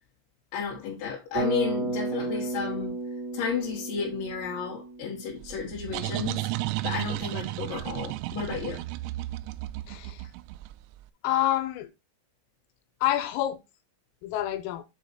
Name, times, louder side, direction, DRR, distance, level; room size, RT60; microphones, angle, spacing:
voice 1, 0.5-2.9 3.3-6.4 6.8-8.8, left 7 dB, 70° left, 3.3 m, -32 dB
Bass guitar, 1.3-5.5, right 3 dB, 40° right, 2.6 m, -33 dB
sound 1, 5.4-10.9, right 18 dB, 85° right, 3.1 m, -33 dB
voice 2, 11.2-11.9 13.0-13.6 14.2-14.8, left 13 dB, 90° left, 3.5 m, -27 dB
7.2 x 5.0 x 4.3 m
omnidirectional pair, 5.9 m